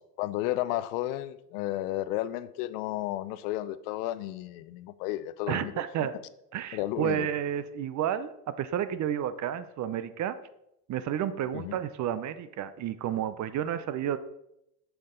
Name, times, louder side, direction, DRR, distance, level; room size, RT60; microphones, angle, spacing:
voice 1, 0.2-5.8 6.7-7.3 11.5-11.8, left 15 dB, 70° left, 14 dB, 0.7 m, -32 dB
voice 2, 5.5-6.2 6.5-10.4 10.9-14.2, right 10 dB, 40° right, 14 dB, 0.6 m, -31 dB
7.6 x 5.8 x 3.8 m, 0.82 s
hypercardioid pair, 85°, 48 cm